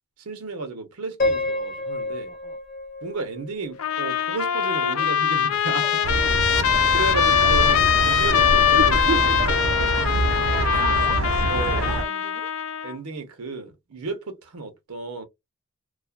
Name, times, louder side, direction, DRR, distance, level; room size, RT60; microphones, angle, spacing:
voice 1, 0.2-2.3 3.0-5.9 6.6-10.2 11.5-11.9 12.8-15.2, right 3 dB, 85° right, 0.7 m, -33 dB
Piano, 1.2-4.2, left 2 dB, 40° left, 0.8 m, -29 dB
Trumpet, 3.8-12.9, left 8 dB, 75° left, 0.4 m, -22 dB
voice 2, 5.8-6.6 10.5-11.2 11.7-12.5, right 1 dB, 5° right, 0.5 m, -42 dB
sound 1, 6.0-12.0, right 3 dB, 60° right, 0.4 m, -25 dB
2.3 x 2.3 x 2.2 m
head